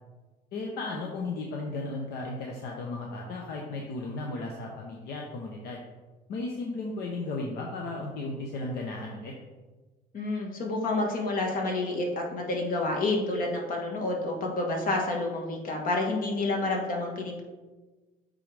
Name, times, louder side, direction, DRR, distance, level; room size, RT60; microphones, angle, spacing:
voice 1, 0.5-5.8 6.3-9.3, left 2 dB, 70° left, 0 dB, 0.9 m, -35 dB
voice 2, 10.1-17.4, left 2 dB, 55° left, 0 dB, 1.5 m, -29 dB
8.4 x 3.8 x 3.4 m, 1.3 s
cardioid pair, 110°, 17 cm